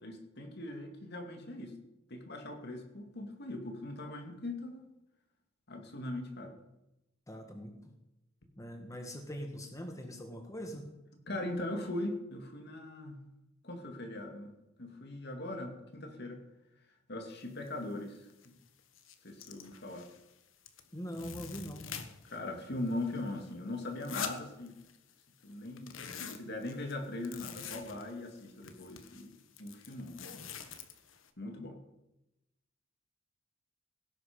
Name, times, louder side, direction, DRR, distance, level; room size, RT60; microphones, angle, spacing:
voice 1, 0.0-1.7 2.1-4.8 5.7-6.5 11.3-13.2 13.6-14.5 14.8-16.4 17.1-18.6 19.2-20.1 22.3-24.7 25.4-25.9 26.3-29.3 29.6-30.5 31.4-31.8, left 2 dB, 55° left, 4 dB, 2.4 m, -40 dB
voice 2, 7.3-7.9 8.6-10.9 20.9-21.8, equal, 15° left, 4 dB, 1.5 m, -43 dB
sound 1, 17.7-17.8 18.2-18.5 18.8-20.3 20.7-22.4 22.7-25.1 25.4-31.3, left 6 dB, 85° left, 1.3 m, -45 dB
17.5 x 10.5 x 5.2 m, 0.92 s
head